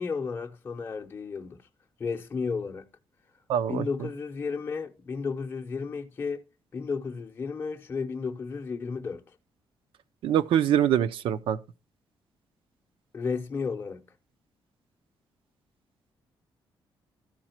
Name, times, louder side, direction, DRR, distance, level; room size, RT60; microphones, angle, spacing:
voice 1, 0.0-1.6 2.0-2.9 3.7-6.4 6.7-9.2 13.1-14.0, left 5 dB, 25° left, 0.7 m, -33 dB
voice 2, 3.5-3.8 10.2-11.6, right 10 dB, 85° right, 0.6 m, -24 dB
13.0 x 4.9 x 4.4 m
wide cardioid pair, 170°, 9 cm